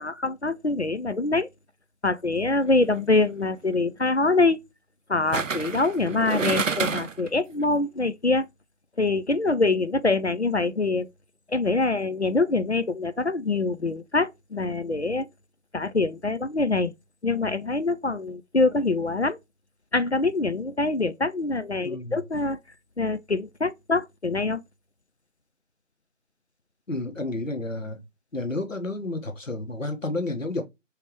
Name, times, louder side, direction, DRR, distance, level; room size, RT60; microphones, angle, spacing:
voice 1, 0.0-1.5 2.0-4.6 5.1-8.5 9.0-11.1 11.5-15.3 15.7-16.9 17.2-19.4 19.9-22.6 23.0-24.6, left 3 dB, 60° left, 0.5 m, -24 dB
sound 1, 2.7-3.0 5.3-7.3 7.6-7.7, right 5 dB, 75° right, 0.6 m, -28 dB
voice 2, 21.8-22.2 26.9-28.0 28.3-30.6, left 2 dB, 75° left, 1.6 m, -31 dB
4.7 x 3.4 x 3.1 m
figure-of-eight pair, 180°, 39 cm